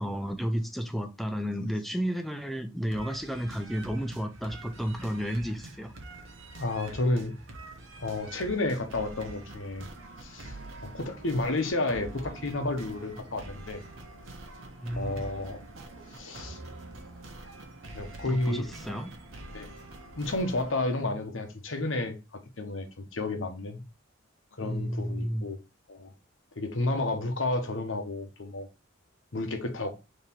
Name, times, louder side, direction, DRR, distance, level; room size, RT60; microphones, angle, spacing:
voice 1, 0.0-5.9 14.8-15.3 18.3-19.1 24.6-25.5 29.3-29.5, equal, ahead, 0.6 m, -32 dB
sound 1, 2.9-20.9, right 2 dB, 75° right, 1.0 m, -45 dB
voice 2, 6.6-7.4 8.0-9.9 10.2-10.6 10.8-13.8 14.9-15.6 16.1-16.6 17.9-18.7 19.5-19.7 20.2-23.8 24.6-25.6 25.9-26.1 26.6-28.7 29.3-29.9, left 2 dB, 70° left, 1.0 m, -31 dB
3.7 x 3.2 x 4.3 m
head